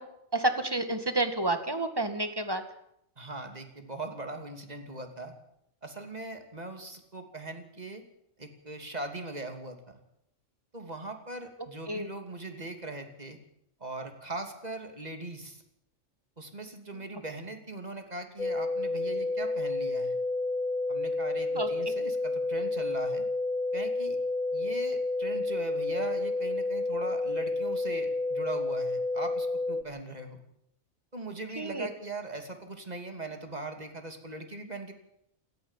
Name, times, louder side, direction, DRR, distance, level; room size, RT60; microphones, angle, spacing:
voice 1, 0.3-2.6 11.9-12.1 21.5-21.9 31.6-31.9, right 2 dB, 20° right, 8 dB, 2.1 m, -30 dB
voice 2, 3.2-5.3 5.8-8.0 8.4-10.0 10.7-13.4 13.8-15.6 16.4-20.2 20.9-23.3 23.7-24.2 24.5-30.4 31.1-34.9, right 2 dB, 35° right, 5 dB, 3.0 m, -40 dB
sound 1, 18.4-29.8, left 2 dB, 40° left, 1.0 m, -30 dB
28.0 x 13.5 x 7.5 m, 0.77 s
omnidirectional pair, 1.2 m